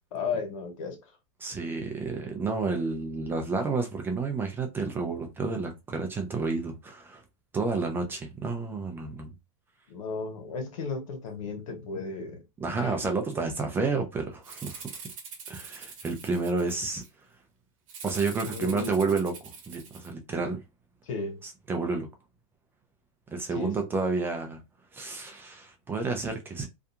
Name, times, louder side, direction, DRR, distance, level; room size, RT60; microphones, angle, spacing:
voice 1, 0.1-1.2 9.9-12.4 12.8-13.0 18.4-18.9 21.0-21.4 23.5-23.7, left 4 dB, 80° left, 1.0 m, -34 dB
voice 2, 1.4-7.2 7.5-9.3 12.6-15.0 15.5-17.0 18.0-20.6 21.4-22.1 23.3-24.6 24.9-26.7, right 4 dB, 15° right, 0.4 m, -30 dB
Rattle (instrument), 14.4-17.1 17.9-20.1, right 5 dB, 90° right, 0.9 m, -44 dB
2.7 x 2.4 x 2.3 m
supercardioid pair, 150°, 17 cm